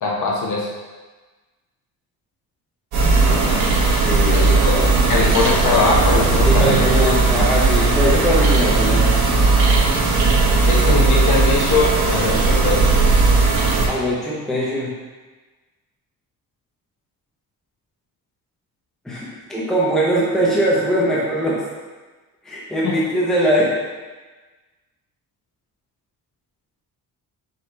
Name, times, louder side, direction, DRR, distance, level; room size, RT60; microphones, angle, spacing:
voice 1, 0.0-0.7 4.2-4.7 5.1-7.5 9.7-9.8 10.6-13.0 22.8-22.9, left 3 dB, 55° left, -3 dB, 1.0 m, -21 dB
sound 1, 2.9-13.9, right 3 dB, 85° right, 1.2 m, -16 dB
voice 2, 3.3-3.7 4.0-4.9 6.4-9.2 10.9-11.0 13.9-14.9 19.0-21.6 22.4-23.7, equal, ahead, -6 dB, 0.6 m, -21 dB
5.1 x 2.9 x 3.1 m, 1.3 s
cardioid pair, 175°, 37 cm